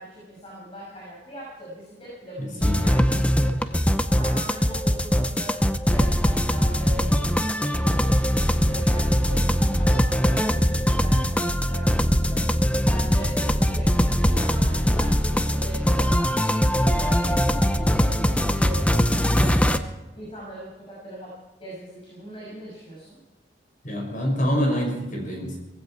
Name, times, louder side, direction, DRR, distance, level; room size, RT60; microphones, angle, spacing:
voice 1, 0.0-3.7 4.1-5.6 5.9-12.4 12.8-16.3 16.8-19.8 20.1-21.3 21.6-23.2, right 1 dB, 35° left, -4 dB, 6.3 m, -40 dB
voice 2, 2.4-2.9 23.8-25.6, equal, 50° left, 2 dB, 6.0 m, -26 dB
sound 1, 2.6-19.8, equal, 10° left, 0.7 m, -21 dB
18.5 x 16.0 x 4.6 m, 1.1 s
head